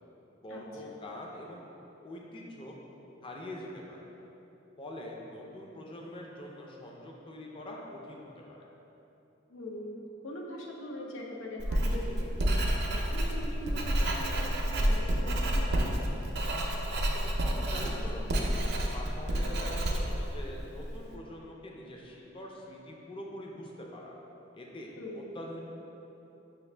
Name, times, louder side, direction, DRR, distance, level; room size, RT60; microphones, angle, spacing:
voice 1, 0.4-1.6 2.0-2.8 3.2-4.1 4.8-8.6 16.9-18.3 18.9-24.1 24.5-25.6, left 1 dB, 25° left, -1 dB, 0.4 m, -44 dB
voice 2, 9.5-12.3 12.9-15.9 25.0-25.2, left 1 dB, 85° left, 0 dB, 0.6 m, -42 dB
Writing, 11.6-21.0, right 1 dB, 55° right, 0.4 m, -29 dB
5.8 x 2.4 x 3.3 m, 3.0 s
head